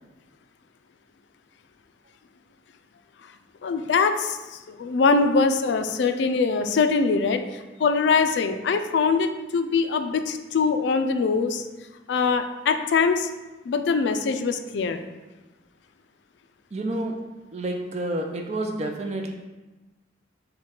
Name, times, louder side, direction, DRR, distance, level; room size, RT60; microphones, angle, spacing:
voice 1, 3.6-11.6 12.1-13.3 13.7-15.0, left 4 dB, 70° left, 7 dB, 0.3 m, -23 dB
voice 2, 16.7-17.2 17.5-19.3, right 1 dB, 35° right, 3 dB, 0.4 m, -29 dB
6.4 x 2.2 x 3.7 m, 1.1 s
head